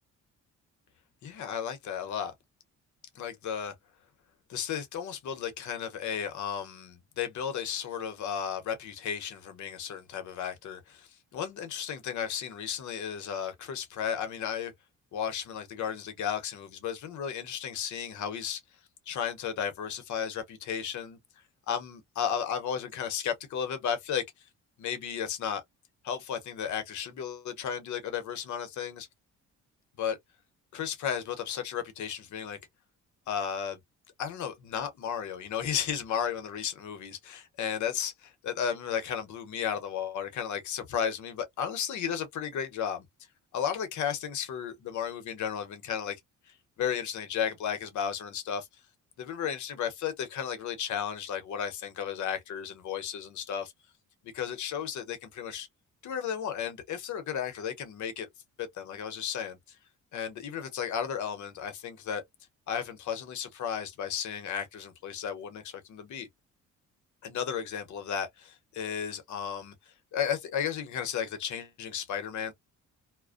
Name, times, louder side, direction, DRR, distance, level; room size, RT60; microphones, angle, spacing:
voice 1, 1.2-2.3 3.1-3.7 4.5-14.7 15.1-18.6 19.1-21.2 21.7-24.2 24.8-25.6 26.0-29.1 30.0-30.2 30.7-32.6 33.3-33.8 34.2-43.0 43.5-46.2 46.5-48.7 49.2-53.7 54.2-55.7 56.0-58.3 58.6-59.8 60.1-62.2 62.7-66.3 67.2-69.7 70.1-72.5, left 8 dB, 70° left, 0.8 m, -34 dB
2.5 x 2.1 x 2.4 m
cardioid pair, 90°, 30 cm